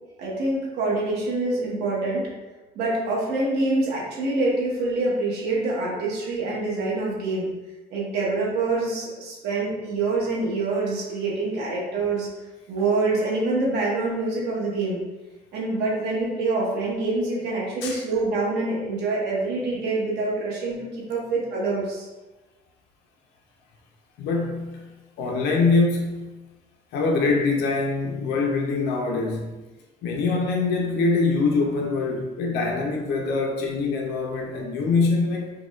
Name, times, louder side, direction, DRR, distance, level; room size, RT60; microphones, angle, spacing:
voice 1, 0.2-2.2 2.7-7.5 7.9-12.3 12.7-15.0 15.5-22.1, right 3 dB, 75° right, -5 dB, 1.0 m, -26 dB
voice 2, 24.2-24.9 25.2-26.3 26.9-29.5 30.0-35.5, left 3 dB, 85° left, 0 dB, 0.5 m, -24 dB
4.6 x 2.2 x 2.3 m, 1.1 s
cardioid pair, 110°, 17 cm